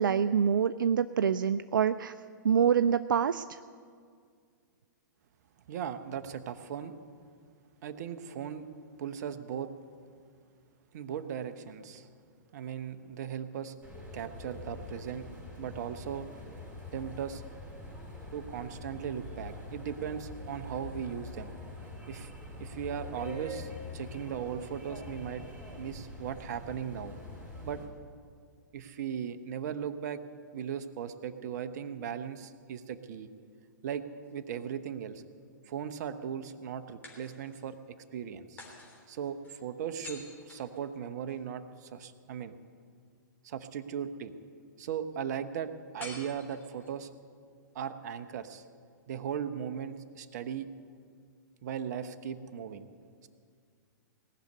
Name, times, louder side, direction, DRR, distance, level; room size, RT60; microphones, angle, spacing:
voice 1, 0.0-2.1 2.4-3.6, right 7 dB, 80° right, 12 dB, 0.4 m, -26 dB
voice 2, 5.7-6.9 7.8-8.7 9.0-9.7 10.9-12.1 12.5-13.7 14.1-15.3 15.6-16.3 16.9-17.4 18.3-21.5 22.1-22.3 22.6-25.4 25.7-27.1 27.6-27.8 28.7-30.2 30.5-33.3 33.8-34.0 34.3-35.2 35.7-38.6 39.1-42.6 43.4-44.3 44.8-47.1 47.7-48.6 49.1-50.7 51.6-52.8, right 8 dB, 55° right, 9 dB, 1.0 m, -38 dB
sound 1, 13.8-27.9, left 2 dB, 10° right, 4.4 m, -44 dB
sound 2, 33.9-35.0 37.0-37.8 38.6-41.4 46.0-47.1, left 2 dB, 15° left, 3.4 m, -50 dB
19.0 x 6.7 x 9.5 m, 2.1 s
hypercardioid pair, 120°, 11 cm